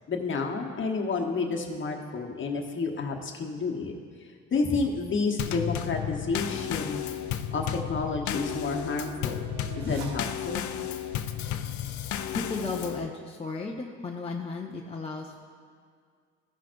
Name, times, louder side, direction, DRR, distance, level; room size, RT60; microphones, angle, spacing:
voice 1, 0.1-3.9 4.5-7.0 7.5-9.5 9.7-10.7, left 4 dB, 40° left, 2 dB, 1.1 m, -30 dB
Drum kit / Snare drum / Bass drum, 5.4-13.1, left 10 dB, 70° left, 0.5 m, -33 dB
sound 1, 6.3-10.7, right 2 dB, 65° right, 1.4 m, -44 dB
voice 2, 12.3-15.4, left 3 dB, 20° left, 0 dB, 0.6 m, -34 dB
15.0 x 5.9 x 2.6 m, 2.1 s
cardioid pair, 90°, 30 cm